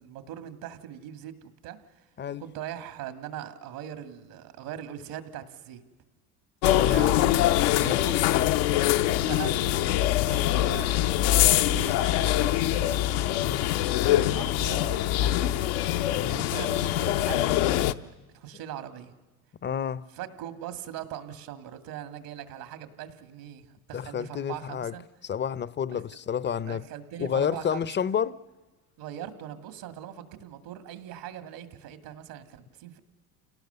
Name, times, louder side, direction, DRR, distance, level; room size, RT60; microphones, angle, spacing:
voice 1, 0.0-2.1 2.4-5.8 6.8-7.3 7.7-8.1 9.2-13.0 14.2-15.7 16.3-19.2 20.1-25.0 25.9-26.0 26.6-28.1 29.0-33.0, right 10 dB, 75° right, 2.1 m, -41 dB
sound 1, 6.6-17.9, left 13 dB, 75° left, 0.8 m, -24 dB
voice 2, 6.6-7.1 7.8-8.2 13.4-13.7 16.1-16.5 19.6-20.1 23.9-24.9 25.2-26.8 27.2-28.4, left 8 dB, 25° left, 0.6 m, -30 dB
27.5 x 18.0 x 6.8 m
supercardioid pair, 85°, 44 cm